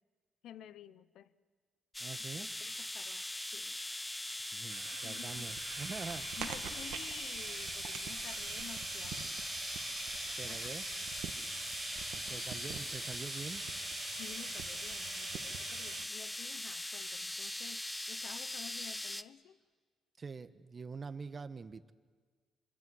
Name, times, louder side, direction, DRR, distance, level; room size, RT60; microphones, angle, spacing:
voice 1, 0.4-1.3 2.4-3.8 4.9-5.5 6.4-9.4 10.5-10.7 11.0-11.1 12.1-12.5 14.1-19.6, left 10 dB, 80° left, 0.9 m, -52 dB
sound 1, 1.9-19.2, left 1 dB, 10° left, 0.8 m, -41 dB
voice 2, 2.0-2.5 4.5-6.3 10.4-10.8 12.1-13.6 20.2-21.9, right 4 dB, 35° right, 1.3 m, -45 dB
sound 2, 4.7-16.0, right 10 dB, 85° right, 1.4 m, -45 dB
26.5 x 24.5 x 7.9 m
cardioid pair, 90°, 0 cm